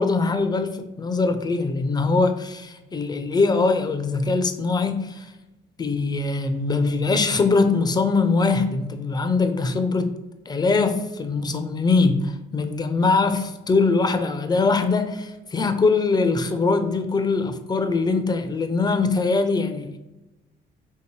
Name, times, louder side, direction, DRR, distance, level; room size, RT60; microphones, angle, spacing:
voice 1, 0.0-5.3 5.8-10.1 10.5-20.0, left 3 dB, 20° left, 0.4 m, -22 dB
3.1 x 2.8 x 3.0 m
cardioid pair, 90°, 20 cm